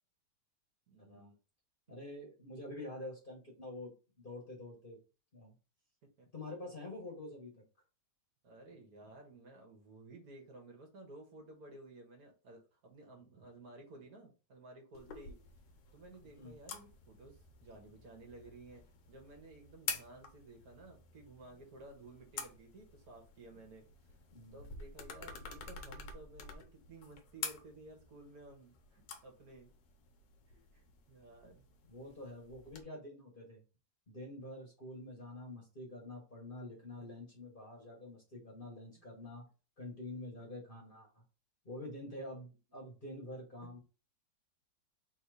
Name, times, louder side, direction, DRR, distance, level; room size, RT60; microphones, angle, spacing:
voice 1, 0.9-1.3 6.2-6.3 8.4-15.4 15.9-24.1 24.5-29.7 30.5-31.7, right 2 dB, 60° right, 2 dB, 1.5 m, -55 dB
voice 2, 1.9-3.9 4.2-5.0 5.3-5.5 6.3-7.6 16.3-16.6 24.3-24.6 31.9-33.6 34.1-39.4 39.8-41.1 41.6-43.8, left 1 dB, 35° left, -1 dB, 1.1 m, -47 dB
sound 1, 14.9-32.8, left 6 dB, 85° left, 1.4 m, -49 dB
3.6 x 2.7 x 4.7 m, 0.33 s
omnidirectional pair, 1.9 m